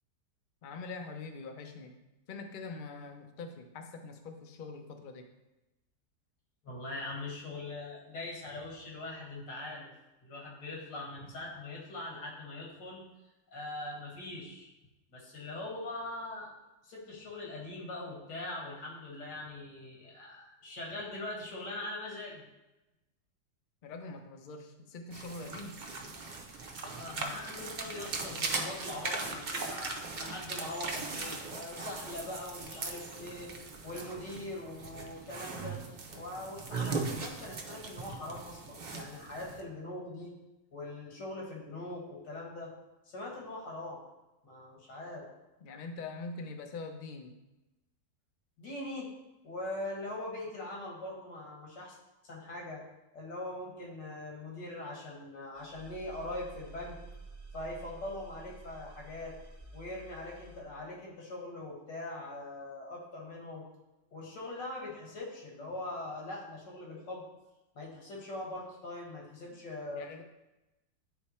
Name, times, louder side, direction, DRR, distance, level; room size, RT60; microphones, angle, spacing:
voice 1, 0.6-2.0 2.3-5.3 23.8-25.8 45.6-47.4 69.5-69.6 70.0-70.2, left 3 dB, 60° left, 4 dB, 0.5 m, -43 dB
voice 2, 6.6-9.9 10.2-13.0 13.5-14.7 15.1-16.5 16.8-22.4 26.8-33.5 33.8-35.8 36.1-40.3 40.7-42.7 43.1-44.0 44.4-45.3 48.6-49.1 49.4-51.9 52.3-52.8 53.1-57.0 57.5-59.3 59.7-63.7 64.1-67.2 67.7-70.0, left 2 dB, 90° left, -2 dB, 2.3 m, -42 dB
sound 1, 25.1-39.6, right 3 dB, 60° right, 0.5 m, -39 dB
Thriller Score Horror Scene, 55.5-60.6, right 3 dB, 15° right, 0.6 m, -50 dB
9.1 x 3.3 x 4.2 m, 1.0 s
omnidirectional pair, 1.8 m